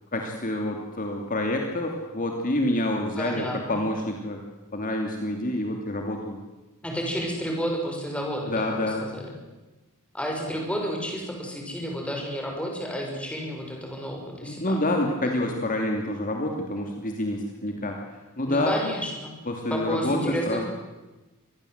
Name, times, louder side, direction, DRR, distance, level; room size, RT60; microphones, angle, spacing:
voice 1, 0.1-4.4 4.7-6.4 8.5-9.0 14.4-18.0 18.4-18.8 19.5-20.7, left 1 dB, 40° left, 2 dB, 2.7 m, -27 dB
voice 2, 3.2-3.8 6.8-9.3 10.1-14.8 15.2-15.5 18.5-19.3 19.7-20.7, equal, 5° left, 0 dB, 6.1 m, -31 dB
25.0 x 20.5 x 8.0 m, 1.1 s
head